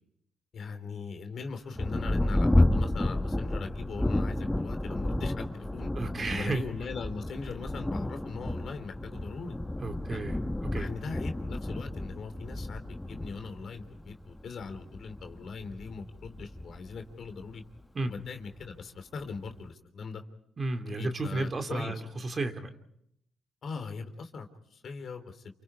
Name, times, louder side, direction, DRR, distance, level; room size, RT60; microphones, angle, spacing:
voice 1, 0.5-5.9 6.3-9.6 10.1-10.3 10.7-17.6 18.0-20.2 20.8-21.9 23.6-25.6, left 5 dB, 55° left, 6 dB, 3.2 m, -40 dB
Thunder, 1.7-17.8 18.6-18.7 19.2-19.7, left 1 dB, 10° left, 1.3 m, -31 dB
voice 2, 5.9-6.7 9.8-10.4 10.7-10.9 17.9-18.1 20.6-22.8, right 2 dB, 35° right, 6 dB, 2.7 m, -33 dB
29.0 x 28.5 x 4.8 m, 0.77 s
cardioid pair, 90°, 0 cm